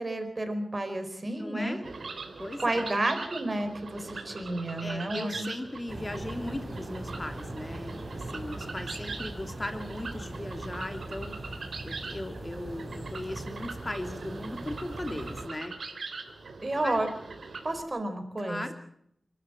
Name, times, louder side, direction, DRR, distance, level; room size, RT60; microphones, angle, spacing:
voice 1, 0.0-1.9 2.6-5.5 16.6-17.1 17.6-18.6, right 2 dB, 40° right, 8 dB, 4.5 m, -31 dB
voice 2, 1.3-1.8 2.4-2.9 4.8-15.8 16.8-17.0 18.4-18.7, left 1 dB, 30° left, 7 dB, 2.8 m, -38 dB
sound 1, 1.8-17.8, right 4 dB, 85° right, 3.6 m, -42 dB
sound 2, 5.9-15.5, right 1 dB, 25° right, 5.7 m, -41 dB
27.5 x 13.0 x 7.8 m, 0.71 s
wide cardioid pair, 55°, 0 cm